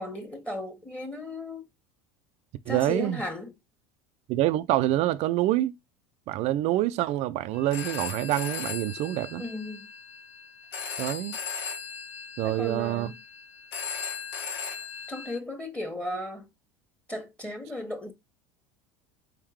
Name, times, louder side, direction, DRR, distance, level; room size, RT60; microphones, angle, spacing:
voice 1, 0.0-1.6 2.7-3.5 9.3-9.9 12.4-13.2 15.1-16.5 17.1-18.1, left 1 dB, 10° left, 1.5 m, -35 dB
voice 2, 2.7-3.2 4.3-5.7 6.3-9.4 11.0-11.4 12.4-13.1, right 14 dB, 55° right, 0.4 m, -26 dB
Telephone, 7.5-15.4, left 6 dB, 75° left, 1.4 m, -38 dB
4.6 x 3.6 x 3.1 m
hypercardioid pair, 80°, 13 cm